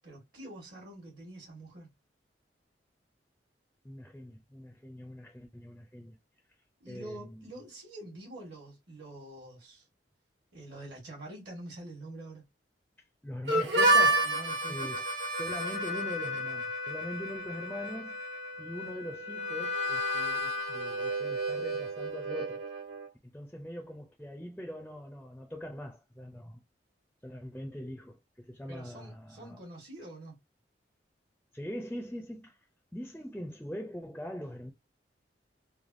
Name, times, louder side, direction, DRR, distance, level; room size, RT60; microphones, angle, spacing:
voice 1, 0.0-1.9 6.8-9.8 10.5-12.4 14.2-14.9 28.7-30.4, right 1 dB, 65° right, 1.2 m, -46 dB
voice 2, 3.8-6.2 6.9-7.4 13.2-14.4 14.7-15.1 15.3-18.2 18.6-22.7 23.3-26.6 27.2-29.6 31.5-32.6 32.9-34.7, equal, 5° left, 0.4 m, -42 dB
Harmonica, 13.5-23.1, right 1 dB, 80° right, 1.3 m, -31 dB
3.2 x 2.2 x 2.4 m
head